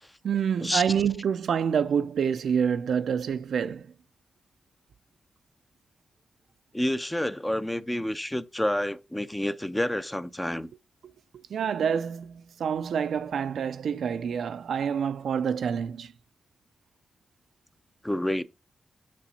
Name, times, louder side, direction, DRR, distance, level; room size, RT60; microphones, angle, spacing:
voice 1, 0.2-3.9 11.5-16.1, right 7 dB, 80° right, 0.4 m, -27 dB
voice 2, 6.7-10.7 18.0-18.4, left 1 dB, 10° left, 0.6 m, -29 dB
7.5 x 4.2 x 5.1 m
cardioid pair, 70°, 0 cm